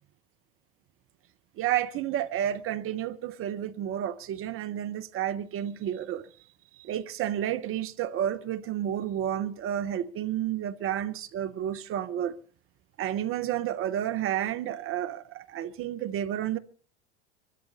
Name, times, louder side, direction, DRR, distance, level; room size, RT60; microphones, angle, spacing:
voice 1, 1.6-6.3 6.8-12.4 13.0-16.6, right 11 dB, 40° right, 0.9 m, -31 dB
24.5 x 12.5 x 4.1 m
hypercardioid pair, 90°, 34 cm